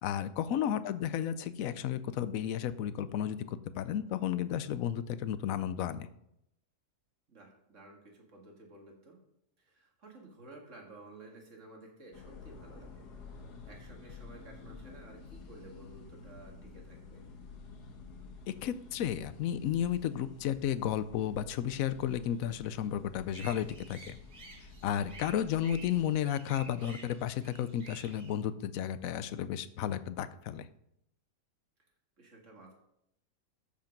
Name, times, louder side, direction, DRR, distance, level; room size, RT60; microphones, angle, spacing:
voice 1, 0.0-3.5 3.7-6.1 18.6-24.2 24.8-30.7, left 10 dB, 65° left, 14 dB, 1.0 m, -33 dB
voice 2, 0.5-0.9 7.3-9.2 9.6-17.2 25.2-25.6 32.2-32.7, right 2 dB, 50° right, 0 dB, 2.3 m, -54 dB
sound 1, 12.1-26.2, left 4 dB, 85° left, 1.7 m, -51 dB
sound 2, 23.3-28.3, right 3 dB, 70° right, 2.6 m, -52 dB
13.5 x 5.3 x 5.2 m, 0.79 s
omnidirectional pair, 1.7 m